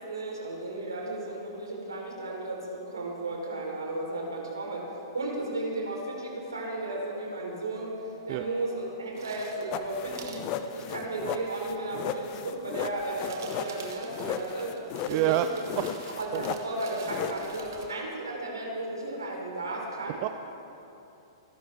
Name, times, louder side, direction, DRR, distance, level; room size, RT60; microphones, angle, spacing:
voice 1, 0.0-4.9 5.1-7.9 8.3-14.7 15.1-15.4 16.1-20.2, right 2 dB, 70° right, -1 dB, 3.6 m, -34 dB
sound 1, 9.1-9.8 10.1-10.5 11.3-11.4 12.9-17.9, right 5 dB, 55° right, 1.9 m, -46 dB
sound 2, 9.7-17.9, left 9 dB, 35° left, 0.7 m, -36 dB
voice 2, 15.1-15.5 15.8-15.9 16.3-16.5 20.1-20.3, right 16 dB, 35° right, 9 dB, 0.5 m, -27 dB
27.5 x 11.5 x 3.4 m, 2.9 s
figure-of-eight pair, 105°, 2 cm